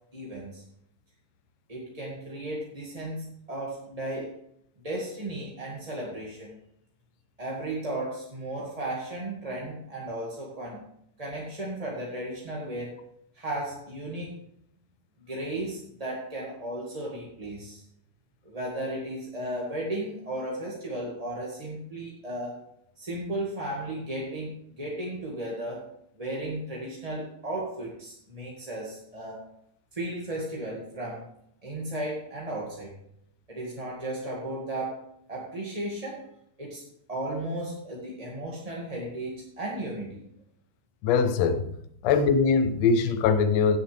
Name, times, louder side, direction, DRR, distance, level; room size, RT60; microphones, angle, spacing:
voice 1, 0.1-0.6 1.7-4.3 4.8-6.6 7.4-10.8 11.2-13.0 13.3-14.4 15.3-17.8 18.4-22.6 23.0-25.8 26.2-29.4 29.9-31.2 31.6-32.9 33.5-35.0 35.3-36.2 36.6-36.8 37.1-40.2, right 1 dB, 15° right, -4 dB, 1.2 m, -35 dB
voice 2, 41.0-41.7 42.0-43.8, left 5 dB, 70° left, 9 dB, 1.8 m, -22 dB
17.0 x 7.0 x 3.3 m, 0.71 s
omnidirectional pair, 3.6 m